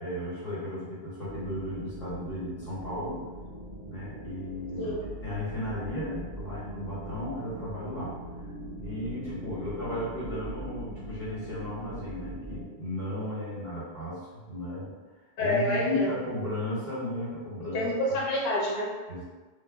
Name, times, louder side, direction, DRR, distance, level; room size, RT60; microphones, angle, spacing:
voice 1, 0.0-3.2 3.8-4.9 5.2-8.2 8.8-14.9 15.4-17.9 19.1-19.2, left 1 dB, 45° left, -9 dB, 1.2 m, -35 dB
sound 1, 1.3-12.6, right 1 dB, 45° right, 0.4 m, -41 dB
voice 2, 15.4-16.1 17.6-18.9, left 1 dB, 65° left, -4 dB, 0.9 m, -28 dB
2.2 x 2.1 x 3.5 m, 1.3 s
omnidirectional pair, 1.2 m